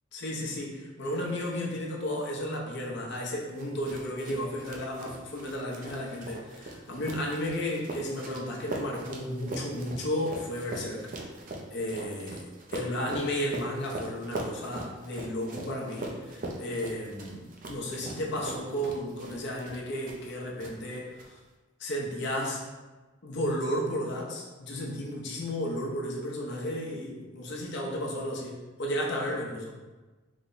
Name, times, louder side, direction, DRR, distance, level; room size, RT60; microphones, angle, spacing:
voice 1, 0.1-11.1 11.7-21.4 21.8-22.6 23.2-29.7, equal, 60° left, -2 dB, 0.7 m, -33 dB
sound 1, 3.6-20.3 20.6-21.3, right 2 dB, 40° right, 0.4 m, -41 dB
3.1 x 2.1 x 3.8 m, 1.2 s
head